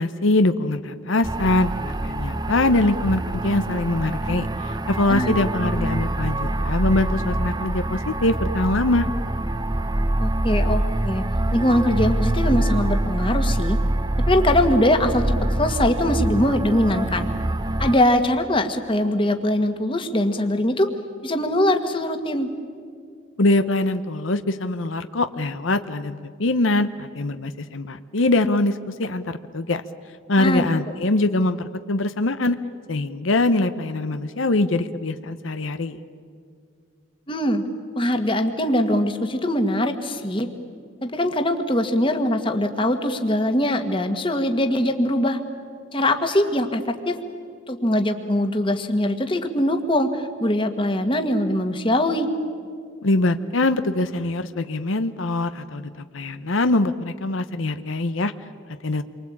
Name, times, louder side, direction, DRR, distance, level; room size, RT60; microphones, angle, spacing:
voice 1, 0.0-9.1 23.4-29.8 30.3-32.6 32.9-36.0 53.0-58.3 58.8-59.0, left 2 dB, 80° left, 10 dB, 0.9 m, -23 dB
sound 1, 1.2-18.0, right 1 dB, 20° right, 0.6 m, -25 dB
voice 2, 10.2-11.2 11.5-13.8 14.3-17.3 17.8-20.9 21.2-22.5 30.4-30.7 37.3-37.6 38.0-40.5 41.0-45.4 45.9-47.2 47.7-52.3, left 1 dB, 25° left, 6 dB, 1.7 m, -22 dB
28.5 x 24.0 x 8.7 m, 2.2 s
head